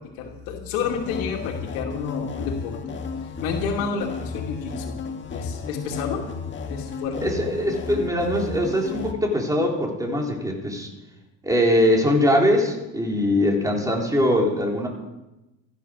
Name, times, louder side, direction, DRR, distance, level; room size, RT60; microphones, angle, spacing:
voice 1, 0.2-3.0 3.2-5.0 5.3-6.2 6.7-7.3, left 6 dB, 85° left, 1 dB, 2.7 m, -30 dB
sound 1, 0.8-9.1, left 5 dB, 35° left, 1.8 m, -33 dB
voice 2, 7.2-10.9 11.4-14.9, equal, 10° right, 0 dB, 3.9 m, -22 dB
14.5 x 10.0 x 6.5 m, 0.99 s
supercardioid pair, 100°, 34 cm